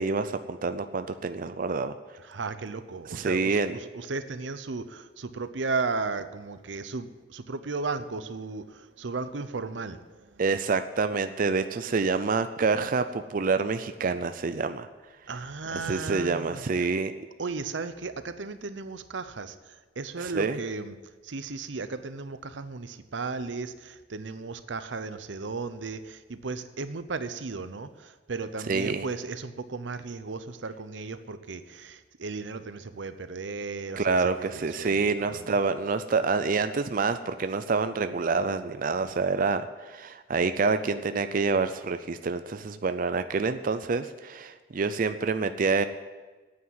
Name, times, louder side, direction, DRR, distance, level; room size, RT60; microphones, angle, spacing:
voice 1, 0.0-1.9 3.1-3.7 10.4-14.9 15.7-17.1 20.2-20.6 28.7-29.1 34.0-45.8, right 4 dB, 50° right, 10 dB, 0.5 m, -27 dB
voice 2, 2.2-10.4 15.3-16.6 17.4-21.0 21.2-35.6, right 4 dB, 90° right, 12 dB, 0.8 m, -35 dB
9.6 x 8.7 x 9.3 m, 1.3 s
head